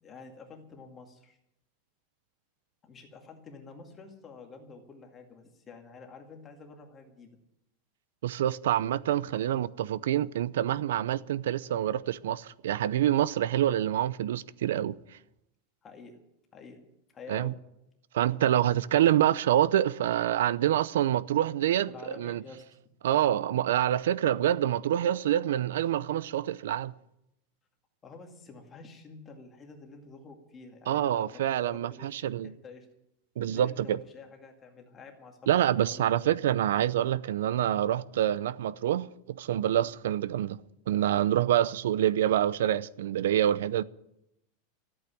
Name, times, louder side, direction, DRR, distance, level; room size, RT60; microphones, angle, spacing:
voice 1, 0.0-1.4 2.8-7.3 15.8-16.2 16.5-16.8 17.1-17.5 21.9-23.0 28.0-32.9 33.4-36.3, left 4 dB, 20° left, 2.1 m, -49 dB
voice 2, 8.2-15.0 17.3-17.5 18.1-21.9 22.2-22.4 23.0-26.9 30.9-32.5 33.4-34.0 35.5-40.6 40.9-43.8, right 11 dB, 90° right, 0.6 m, -26 dB
14.0 x 8.8 x 9.9 m
supercardioid pair, 165°, 0 cm